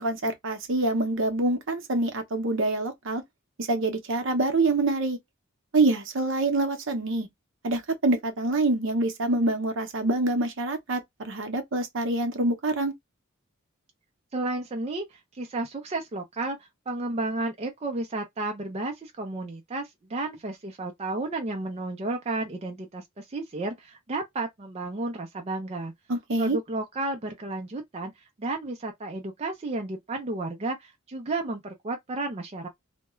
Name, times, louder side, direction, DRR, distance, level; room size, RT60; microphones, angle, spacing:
voice 1, 0.0-3.2 3.6-5.2 5.7-7.3 7.6-12.9 26.1-26.6, right 2 dB, 65° right, 0.7 m, -26 dB
voice 2, 14.3-25.9 26.4-28.1 28.4-32.7, right 2 dB, 30° right, 0.4 m, -32 dB
2.3 x 2.1 x 2.9 m
head